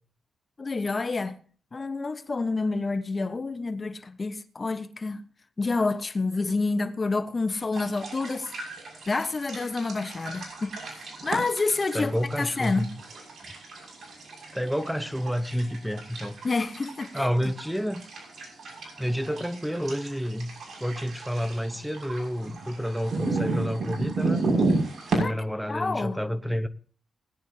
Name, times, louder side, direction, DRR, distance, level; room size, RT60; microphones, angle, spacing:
voice 1, 0.6-1.4 1.7-5.2 5.6-8.5 9.1-12.9 16.4-17.5 25.1-25.3 25.7-26.2, left 3 dB, 35° left, 1.1 m, -28 dB
sound 1, 7.7-25.2, right 3 dB, 65° right, 6.4 m, -33 dB
voice 2, 11.9-12.9 14.5-16.4 17.1-18.1 19.0-20.5 20.8-24.4 25.1-26.7, equal, 5° right, 1.0 m, -29 dB
20.0 x 11.0 x 2.8 m
cardioid pair, 85°, 0 cm